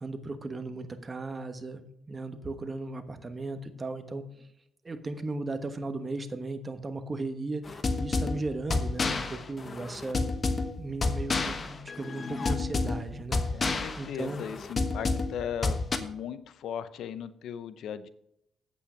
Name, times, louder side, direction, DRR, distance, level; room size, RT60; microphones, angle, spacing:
voice 1, 0.0-1.8 2.1-4.2 4.8-10.2 10.8-14.4, right 2 dB, 25° right, 9 dB, 1.2 m, -36 dB
sound 1, 7.7-16.0, left 3 dB, 35° left, 1.1 m, -30 dB
voice 2, 13.5-18.1, left 8 dB, 75° left, 14 dB, 0.6 m, -37 dB
8.6 x 8.5 x 5.1 m, 0.79 s
cardioid pair, 90°, 0 cm